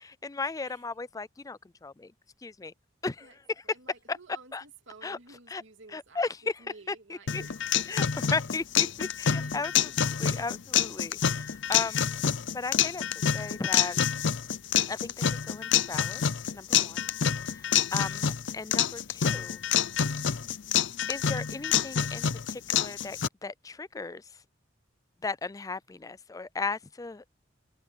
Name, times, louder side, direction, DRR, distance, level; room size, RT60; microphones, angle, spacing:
voice 1, 0.2-2.1 2.4-2.7 3.0-3.3 4.1-4.2 4.5-4.6 5.0-5.2 5.5-5.6 5.9-7.4 7.9-12.2 12.5-13.0 13.3-14.0 14.9-15.1 15.4-16.2 16.5-17.1 17.4-19.6 21.1-24.3 25.2-27.2, left 4 dB, 20° left, 0.4 m, -36 dB
voice 2, 3.6-7.6 9.4-10.0, right 3 dB, 70° right, 2.9 m, -53 dB
sound 1, 7.3-23.3, left 8 dB, 70° left, 0.7 m, -27 dB
head